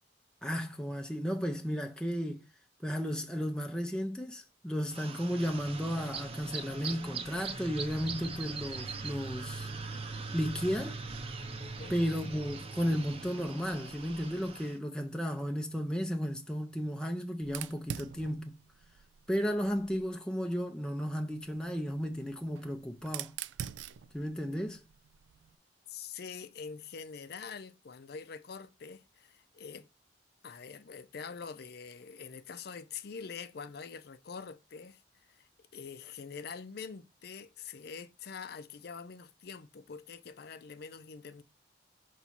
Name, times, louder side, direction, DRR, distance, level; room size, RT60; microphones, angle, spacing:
voice 1, 0.4-2.4 2.8-9.7 10.3-11.0 11.9-18.5 19.3-23.3 24.1-24.8, equal, 5° left, 0.5 m, -34 dB
sound 1, 4.9-14.8, right 4 dB, 35° right, 0.7 m, -41 dB
voice 2, 11.6-11.9 25.9-29.9 30.4-35.0 35.3-41.4, left 6 dB, 60° left, 0.5 m, -45 dB
Fire, 17.4-20.2 21.3-25.6, right 9 dB, 85° right, 0.3 m, -45 dB
5.9 x 3.1 x 5.5 m
head